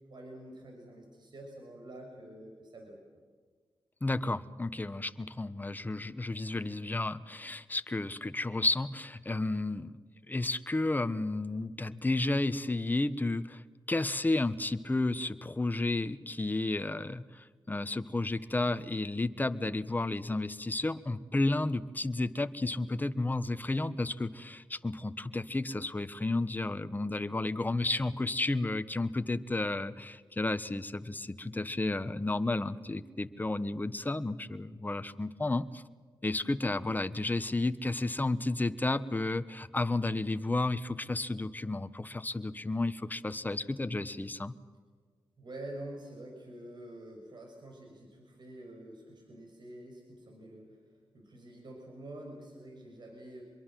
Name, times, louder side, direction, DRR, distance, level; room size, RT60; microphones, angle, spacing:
voice 1, 0.1-3.0 45.4-50.8 51.1-53.4, right 1 dB, 60° right, 2 dB, 6.3 m, -47 dB
voice 2, 4.0-10.0 10.3-13.6 13.9-35.8 36.2-44.5, left 2 dB, 20° left, 12 dB, 1.3 m, -32 dB
25.5 x 22.5 x 7.7 m, 1.5 s
cardioid pair, 65°, 9 cm